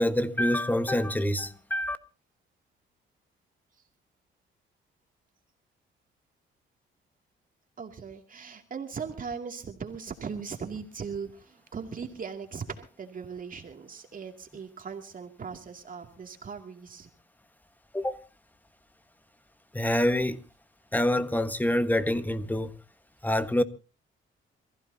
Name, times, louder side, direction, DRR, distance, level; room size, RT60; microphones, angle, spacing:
voice 1, 0.0-2.0 17.9-18.2 19.7-20.4 20.9-22.8 23.2-23.6, left 1 dB, 10° left, 1.4 m, -26 dB
voice 2, 7.8-17.1, right 6 dB, 45° right, 2.5 m, -39 dB
27.5 x 15.5 x 2.8 m
cardioid pair, 90°, 20 cm